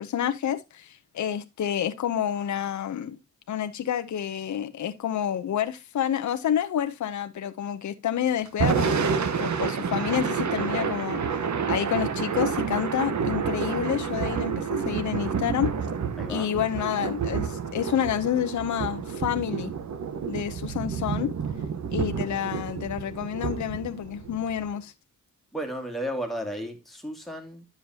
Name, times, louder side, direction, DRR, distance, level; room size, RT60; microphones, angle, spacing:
voice 1, 0.0-3.2 3.5-8.9 9.4-11.2 11.7-15.7 16.3-19.7 20.3-21.3 21.9-24.9, left 9 dB, 60° left, 0.8 m, -29 dB
Thunder / Rain, 8.5-24.7, right 6 dB, 60° right, 1.2 m, -29 dB
voice 2, 16.2-16.5 25.5-27.7, equal, ahead, 2.3 m, -33 dB
10.5 x 7.2 x 2.8 m
cardioid pair, 110°, 33 cm